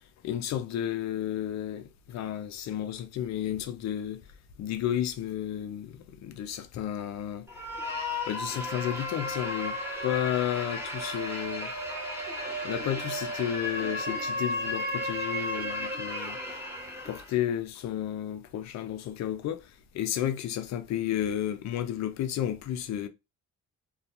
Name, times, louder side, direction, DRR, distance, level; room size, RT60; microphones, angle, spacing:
voice 1, 0.2-4.2 4.6-7.5 8.2-11.7 12.6-16.4 17.1-23.1, left 11 dB, 65° left, 0.5 m, -32 dB
sound 1, 7.5-17.3, left 1 dB, 10° right, 0.9 m, -34 dB
2.3 x 2.3 x 2.8 m
cardioid pair, 90°, 30 cm